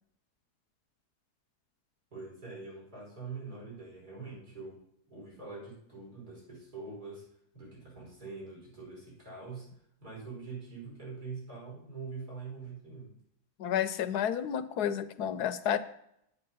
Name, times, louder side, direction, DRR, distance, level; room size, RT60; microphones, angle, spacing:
voice 1, 2.1-7.3 7.5-9.7 10.0-13.1, right 4 dB, 75° right, -4 dB, 5.5 m, -44 dB
voice 2, 13.6-15.8, left 9 dB, 80° left, 12 dB, 1.3 m, -31 dB
9.8 x 9.5 x 5.4 m, 0.74 s
omnidirectional pair, 1.7 m